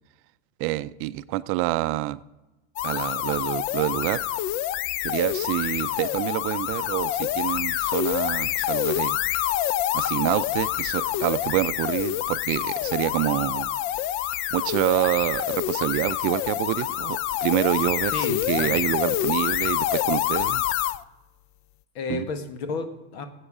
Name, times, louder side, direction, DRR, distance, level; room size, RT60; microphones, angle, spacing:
voice 1, 0.6-2.2 2.8-4.2 5.0-9.2 9.9-13.7 14.5-18.1 18.5-20.6 22.1-22.3, right 17 dB, 45° right, 14 dB, 0.4 m, -27 dB
sound 1, 2.8-21.0, left 13 dB, 45° left, 0.4 m, -27 dB
voice 2, 18.1-18.8 21.9-23.3, left 4 dB, 85° left, 8 dB, 1.5 m, -32 dB
17.5 x 8.1 x 4.9 m, 1.1 s
supercardioid pair, 130°, 30 cm